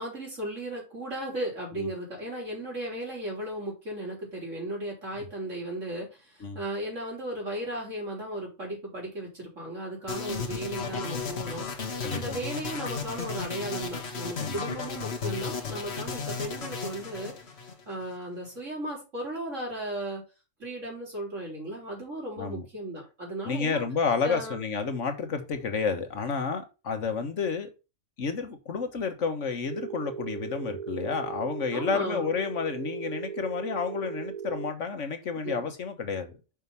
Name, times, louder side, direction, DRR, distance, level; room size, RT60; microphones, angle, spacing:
voice 1, 0.0-11.7 12.1-17.4 17.9-20.2 20.6-23.8 24.2-24.6 31.7-32.3 35.4-35.7, right 1 dB, 90° right, 4.2 m, -35 dB
sound 1, 10.1-18.2, left 5 dB, 60° left, 1.6 m, -34 dB
voice 2, 12.0-12.4 14.4-14.6 22.4-22.6 23.4-27.7 28.2-36.4, left 5 dB, 80° left, 1.6 m, -30 dB
Telephone, 29.7-34.7, right 7 dB, 50° right, 0.4 m, -37 dB
6.4 x 4.7 x 5.5 m
omnidirectional pair, 1.3 m